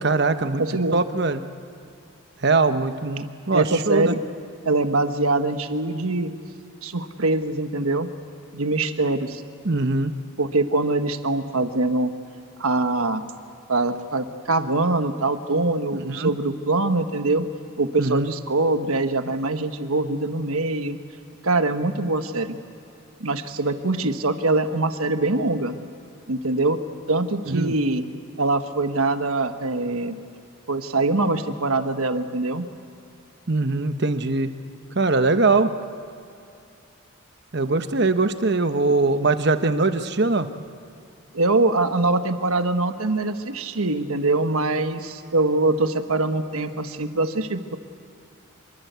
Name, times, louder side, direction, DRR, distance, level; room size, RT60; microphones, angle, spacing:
voice 1, 0.0-0.6 0.9-1.4 2.4-4.1 9.6-10.1 15.9-16.3 18.0-18.3 27.5-27.7 33.5-34.5 34.9-35.7 37.5-40.5, right 3 dB, 50° right, 9 dB, 1.0 m, -21 dB
voice 2, 0.6-1.0 3.5-4.2 4.6-6.3 6.8-8.1 8.5-9.4 10.4-12.1 12.6-13.2 13.7-17.4 17.8-21.0 21.4-22.6 23.2-25.8 26.3-26.8 27.1-28.0 28.4-30.2 30.7-32.7 41.3-47.8, right 2 dB, 90° right, 8 dB, 1.4 m, -23 dB
26.0 x 23.0 x 8.2 m, 2.6 s
head